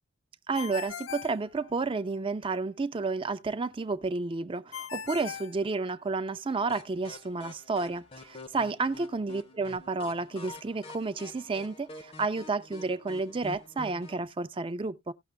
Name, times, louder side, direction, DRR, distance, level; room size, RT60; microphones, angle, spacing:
Ringtone, 0.5-2.2 4.7-6.3, left 8 dB, 75° left, 0.4 m, -40 dB
voice 1, 0.5-15.1, right 3 dB, 25° right, 0.4 m, -31 dB
sound 1, 6.7-14.3, left 2 dB, 30° left, 0.6 m, -47 dB
17.5 x 5.9 x 2.2 m
head